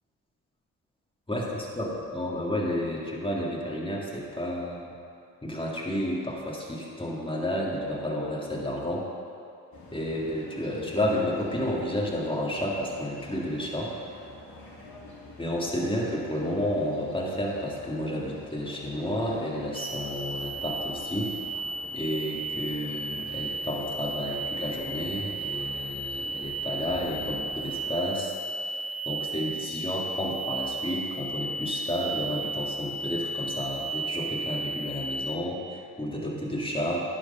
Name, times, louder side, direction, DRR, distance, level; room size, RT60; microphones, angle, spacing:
voice 1, 1.3-5.0 5.4-9.1 9.9-13.9 15.4-21.4 21.9-28.3 28.6-28.8 29.0-37.0, equal, 10° left, -3 dB, 2.0 m, -31 dB
sound 1, 9.7-27.9, left 2 dB, 60° left, 2.1 m, -47 dB
sound 2, 19.7-35.4, right 2 dB, 35° right, 0.9 m, -34 dB
10.0 x 4.5 x 5.6 m, 2.5 s
supercardioid pair, 45°, 41 cm